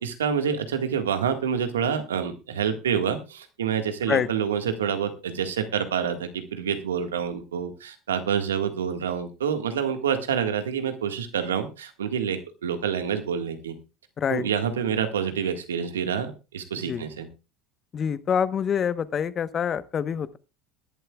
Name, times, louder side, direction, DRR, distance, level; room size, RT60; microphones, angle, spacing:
voice 1, 0.0-13.7 14.3-17.3, right 7 dB, 90° right, 7 dB, 1.7 m, -27 dB
voice 2, 17.9-20.4, left 7 dB, 40° left, 14 dB, 1.0 m, -26 dB
21.5 x 11.5 x 2.4 m, 0.29 s
hypercardioid pair, 80°, 0 cm